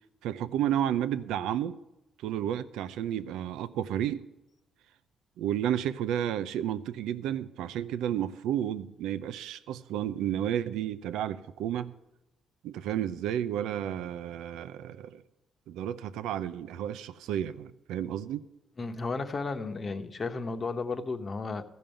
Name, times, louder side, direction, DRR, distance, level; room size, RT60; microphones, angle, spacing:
voice 1, 0.2-1.8 2.2-4.2 5.4-11.9 12.6-15.2 15.7-18.5, right 10 dB, 90° right, 0.6 m, -32 dB
voice 2, 18.8-21.6, left 3 dB, 35° left, 1.0 m, -33 dB
14.5 x 5.4 x 8.9 m
cardioid pair, 90°, 0 cm